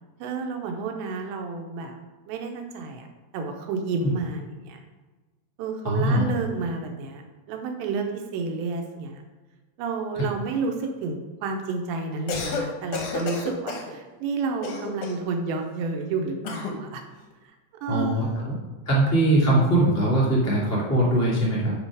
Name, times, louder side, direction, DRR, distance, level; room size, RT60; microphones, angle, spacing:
voice 1, 0.2-2.0 2.3-3.1 3.3-4.8 5.6-7.2 7.5-9.2 9.8-17.0 17.4-17.6 17.8-18.5, right 4 dB, 80° right, 3 dB, 3.1 m, -30 dB
voice 2, 5.8-6.2 17.9-18.6 18.8-21.7, right 1 dB, 5° left, -6 dB, 1.4 m, -21 dB
Cough, 12.1-12.7 12.9-13.9 14.6-15.3 16.4-16.8, left 3 dB, 75° left, 1.8 m, -31 dB
7.1 x 5.3 x 5.0 m, 1.2 s
omnidirectional pair, 5.0 m